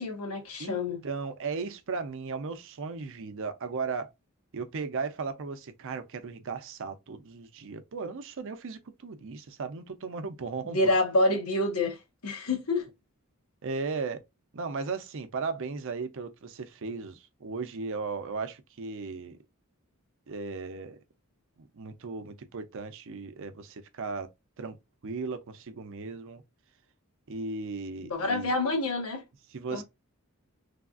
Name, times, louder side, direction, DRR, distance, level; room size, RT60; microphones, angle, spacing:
voice 1, 0.0-1.0 10.6-12.9 28.0-29.2 29.7-29.8, left 2 dB, 90° left, 1.2 m, -28 dB
voice 2, 0.6-4.1 4.5-10.8 13.6-14.2 14.5-19.4 20.3-21.0 21.6-24.3 24.6-24.8 25.0-26.4 27.3-28.5 29.5-29.8, right 4 dB, 60° right, 0.5 m, -36 dB
3.4 x 2.4 x 2.3 m
head